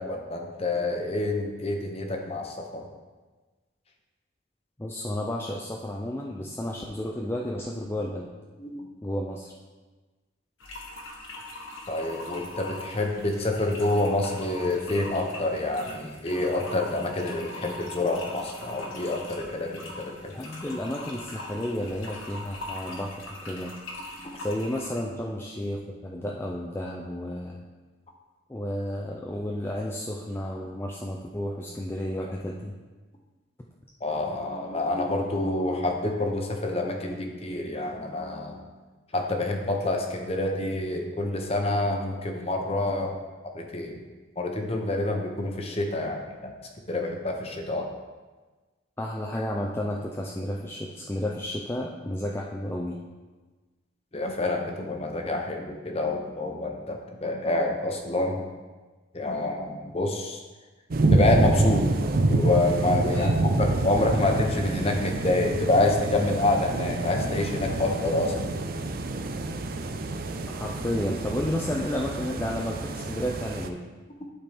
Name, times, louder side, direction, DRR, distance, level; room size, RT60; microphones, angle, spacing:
voice 1, 0.0-2.9 8.6-8.9 11.9-20.3 24.2-24.3 34.0-38.7 39.1-43.1 43.5-44.0 44.4-46.5 46.9-47.9 54.1-58.4 59.1-60.4 61.1-61.9 62.3-63.3 63.6-68.5, left 2 dB, 30° left, 2 dB, 0.8 m, -27 dB
voice 2, 4.8-8.3 9.0-9.5 20.2-23.8 24.4-27.6 28.5-32.7 49.0-53.0 63.1-63.3 70.5-73.8, left 1 dB, 10° left, -2 dB, 0.4 m, -32 dB
sound 1, 10.6-25.0, left 1 dB, 80° left, 1.3 m, -41 dB
sound 2, 60.9-73.7, right 2 dB, 45° right, 0.5 m, -27 dB
12.0 x 4.3 x 3.5 m, 1.3 s
head